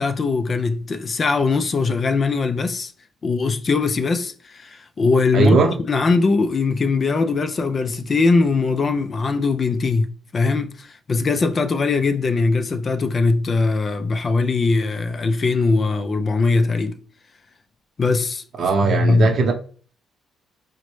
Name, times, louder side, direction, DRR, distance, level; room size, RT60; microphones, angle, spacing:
voice 1, 0.0-2.9 3.2-17.0 18.0-18.4 18.8-19.3, left 4 dB, 40° left, 0.4 m, -21 dB
voice 2, 5.3-5.8 18.6-19.5, right 3 dB, 60° right, 0.8 m, -18 dB
3.9 x 2.1 x 3.0 m
cardioid pair, 90°, 0 cm